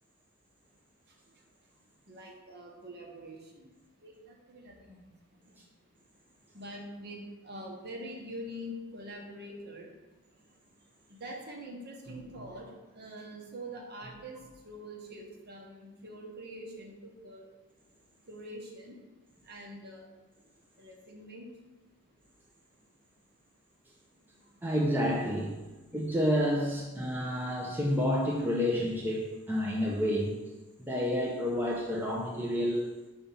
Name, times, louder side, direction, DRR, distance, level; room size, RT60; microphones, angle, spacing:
voice 1, 2.1-3.7 4.0-5.4 6.5-9.9 11.1-17.5 18.3-19.0 19.4-20.1 20.8-21.5, equal, 45° right, 0 dB, 1.1 m, -44 dB
voice 2, 24.6-25.6 25.9-30.4 30.8-33.0, equal, 10° right, -3 dB, 0.6 m, -29 dB
5.5 x 4.4 x 5.5 m, 1.2 s
head